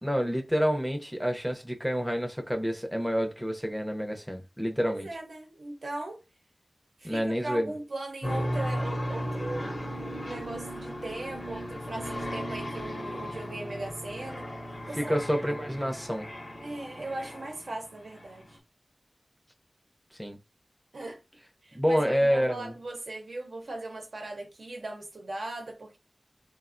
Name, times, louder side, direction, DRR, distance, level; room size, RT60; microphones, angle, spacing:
voice 1, 0.0-5.1 7.0-7.7 15.0-16.3 20.2-20.4 21.7-22.7, equal, ahead, 0.5 m, -28 dB
voice 2, 4.8-6.2 7.0-15.2 16.6-18.6 20.9-21.2 21.6-26.0, right 2 dB, 85° right, 0.7 m, -39 dB
sound 1, 8.2-17.8, equal, 55° left, 0.7 m, -35 dB
3.2 x 2.1 x 2.5 m
wide cardioid pair, 70°, 0 cm